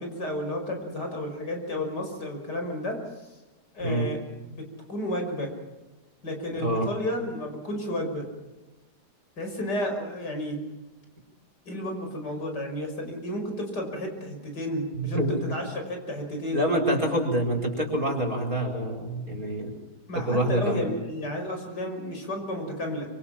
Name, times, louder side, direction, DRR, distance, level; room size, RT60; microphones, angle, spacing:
voice 1, 0.0-3.0 3.7-4.2 4.4-5.5 6.2-8.3 9.4-10.6 11.7-16.6 20.1-23.1, left 1 dB, 75° left, 3 dB, 6.3 m, -32 dB
voice 2, 6.5-6.9 14.9-15.3 16.5-19.7 20.1-20.9, right 1 dB, 55° right, 2 dB, 5.1 m, -26 dB
26.5 x 26.0 x 5.8 m, 1.1 s
omnidirectional pair, 1.8 m